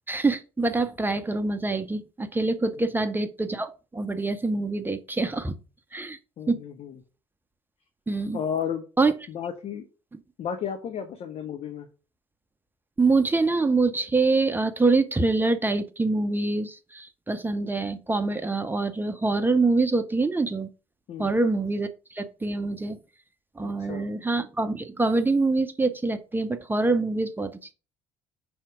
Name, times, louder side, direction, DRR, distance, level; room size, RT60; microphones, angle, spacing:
voice 1, 0.1-5.6 5.9-6.2 6.5-6.6 8.1-8.4 9.0-9.1 13.0-20.7 21.2-23.0 23.6-27.7, right 3 dB, 15° right, 0.7 m, -25 dB
voice 2, 6.4-7.0 8.3-8.8 9.3-9.9 10.4-11.9 21.1-21.4 23.6-24.1, left 8 dB, 40° left, 0.9 m, -33 dB
5.8 x 3.5 x 5.0 m
figure-of-eight pair, 50°, 15 cm